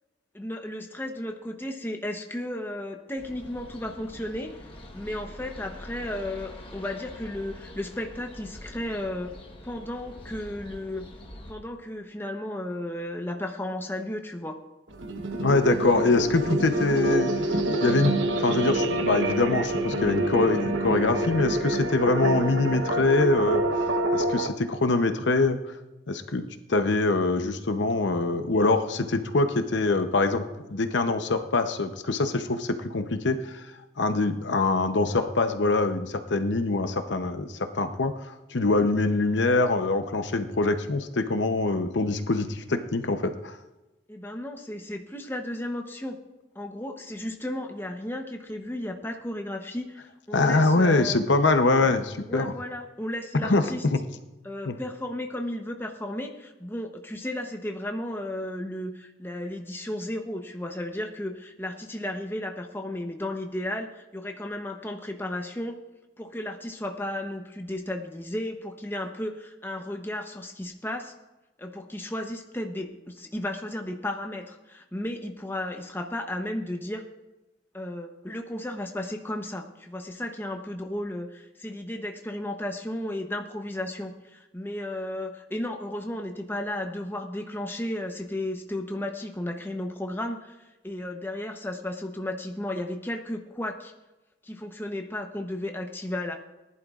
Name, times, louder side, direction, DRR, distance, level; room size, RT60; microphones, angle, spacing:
voice 1, 0.3-4.5 4.9-9.3 9.6-11.1 11.5-14.6 44.1-46.2 46.5-51.2 52.2-53.9 54.4-65.8 66.2-71.1 71.6-77.0 77.7-93.9 94.4-96.4, left 1 dB, 10° left, 4 dB, 0.8 m, -34 dB
sound 1, 3.2-11.5, left 1 dB, 30° left, 1.2 m, -44 dB
sound 2, 14.9-24.5, right 1 dB, 85° right, 1.0 m, -27 dB
voice 2, 15.4-25.6 26.1-26.4 26.7-33.7 34.0-43.6 50.3-52.5 53.4-54.0 54.7-54.8, left 3 dB, 70° left, 8 dB, 0.8 m, -24 dB
19.5 x 11.0 x 2.5 m, 1.0 s
head